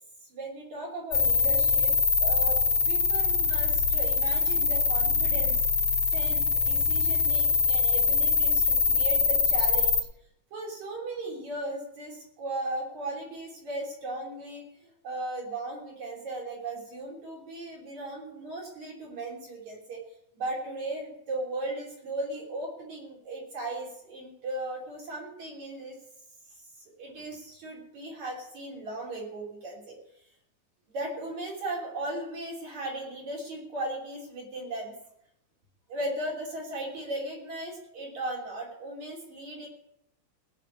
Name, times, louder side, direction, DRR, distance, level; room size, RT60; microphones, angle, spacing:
voice 1, 0.3-5.7 6.1-10.1 10.5-20.0 20.3-26.0 26.5-26.6 27.0-30.0 30.9-34.9 35.9-39.7, right 2 dB, 60° right, -3 dB, 4.4 m, -37 dB
sound 1, 1.1-10.0, left 5 dB, 65° left, 3.2 m, -24 dB
18.0 x 6.5 x 8.3 m, 0.79 s
omnidirectional pair, 3.7 m